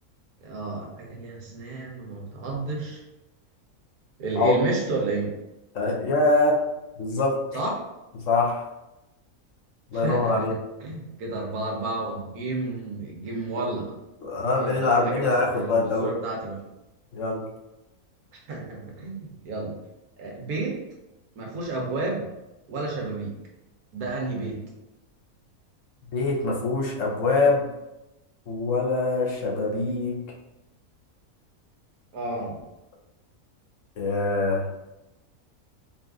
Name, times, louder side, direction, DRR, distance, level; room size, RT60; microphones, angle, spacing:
voice 1, 0.4-3.0 4.2-5.3 7.5-7.8 9.9-10.5 10.8-14.0 14.5-16.6 18.5-19.7 20.2-20.8 21.4-22.3 22.7-23.3 23.9-24.6 32.1-32.6, right 3 dB, 90° right, -1 dB, 1.5 m, -31 dB
voice 2, 5.7-6.6 7.0-7.4 8.3-8.6 9.9-10.5 14.2-16.1 17.1-17.4 26.1-27.6 28.5-30.2 34.0-34.7, left 3 dB, 65° left, -2 dB, 1.1 m, -23 dB
4.2 x 2.5 x 3.5 m, 0.96 s
omnidirectional pair, 1.5 m